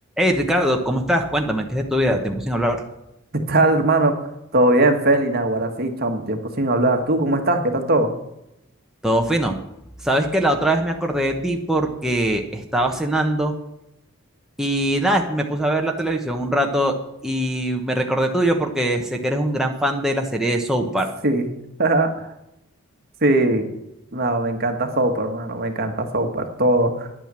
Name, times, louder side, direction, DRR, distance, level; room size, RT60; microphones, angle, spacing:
voice 1, 0.2-2.8 9.0-9.6 10.0-13.5 14.6-17.0 17.2-21.1, right 1 dB, 5° right, 1 dB, 1.0 m, -22 dB
voice 2, 3.3-4.3 4.5-8.1 21.2-21.5 21.8-22.3 23.2-23.7 24.1-27.1, right 2 dB, 50° right, 5 dB, 1.5 m, -20 dB
10.5 x 9.1 x 7.6 m, 0.84 s
head